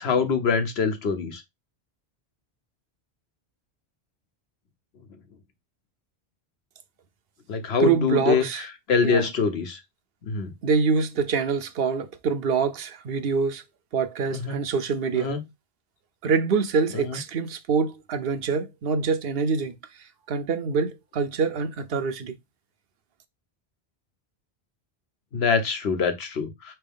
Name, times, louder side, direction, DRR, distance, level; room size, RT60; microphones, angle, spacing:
voice 1, 0.0-1.4 7.5-8.4 8.9-9.8 10.2-10.5 14.3-14.6 15.1-15.4 16.9-17.2 25.3-26.7, left 5 dB, 70° left, 1.2 m, -24 dB
voice 2, 7.8-8.6 9.0-9.3 10.6-13.6 13.9-15.3 16.2-19.7 20.3-22.3, right 5 dB, 65° right, 0.9 m, -25 dB
4.5 x 3.4 x 3.5 m
omnidirectional pair, 1.1 m